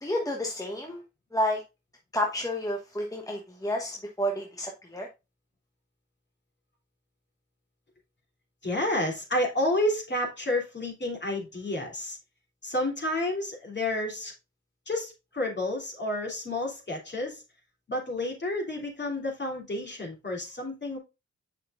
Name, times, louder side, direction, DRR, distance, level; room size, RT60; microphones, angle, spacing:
voice 1, 0.0-1.0 1.3-1.6 2.1-5.1, equal, 10° left, 1.2 m, -30 dB
voice 2, 8.6-12.2 12.6-14.3 14.9-17.4 17.9-21.0, left 1 dB, 35° left, 3.1 m, -30 dB
6.5 x 6.5 x 2.5 m
supercardioid pair, 40°, 32 cm